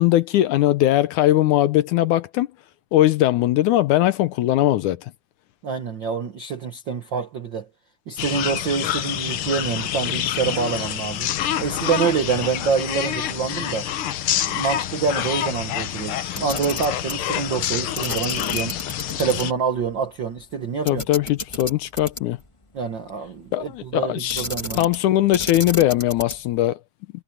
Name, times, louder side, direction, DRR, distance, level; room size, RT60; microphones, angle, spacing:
voice 1, 0.0-2.5 2.9-5.1 20.9-22.4 23.5-24.4 24.8-26.8, left 14 dB, 75° left, 2.0 m, -20 dB
voice 2, 5.6-7.7 8.1-11.3 11.6-13.9 14.5-18.8 19.1-21.0 22.7-24.8, right 6 dB, 65° right, 1.1 m, -26 dB
sound 1, 8.2-19.5, left 10 dB, 90° left, 1.2 m, -27 dB
Camera, 16.3-17.2 18.0-19.4 19.8-19.9 20.9-22.5 24.3-25.1 25.3-26.5, left 2 dB, 30° left, 0.5 m, -32 dB
omnidirectional pair, 3.9 m